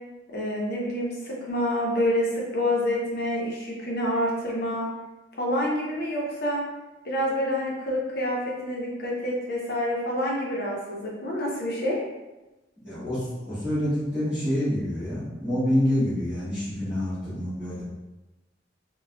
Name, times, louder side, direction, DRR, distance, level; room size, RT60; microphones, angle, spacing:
voice 1, 0.3-4.9 5.4-6.6 7.0-12.0, left 1 dB, 60° left, -3 dB, 0.8 m, -27 dB
voice 2, 12.8-17.8, left 1 dB, 5° right, -14 dB, 1.4 m, -27 dB
4.6 x 2.3 x 2.3 m, 1.1 s
head